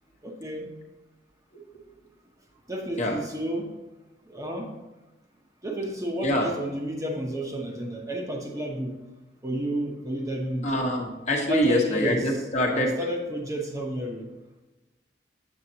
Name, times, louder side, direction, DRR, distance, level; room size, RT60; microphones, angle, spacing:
voice 1, 0.2-0.7 2.7-3.7 4.3-4.7 5.6-9.0 9.4-10.8 11.5-12.2 12.7-14.3, equal, 20° right, 0 dB, 0.8 m, -31 dB
voice 2, 10.6-13.0, equal, 40° left, 0 dB, 1.1 m, -25 dB
7.9 x 6.4 x 2.8 m, 1.1 s
head